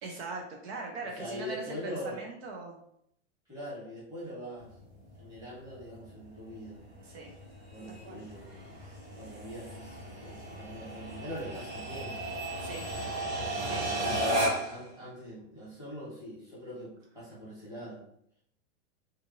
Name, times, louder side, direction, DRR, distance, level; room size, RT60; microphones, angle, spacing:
voice 1, 0.0-2.8 7.0-7.3 7.9-8.2 12.6-12.9 13.6-14.2, right 3 dB, 65° right, 0 dB, 0.6 m, -41 dB
voice 2, 1.2-2.2 3.5-4.8 5.2-6.8 7.7-8.8 9.1-12.2 14.0-18.0, equal, 10° right, -10 dB, 1.3 m, -42 dB
sound 1, 4.6-14.8, right 1 dB, 25° right, 1.0 m, -35 dB
2.7 x 2.5 x 2.6 m, 0.72 s
supercardioid pair, 150°, 34 cm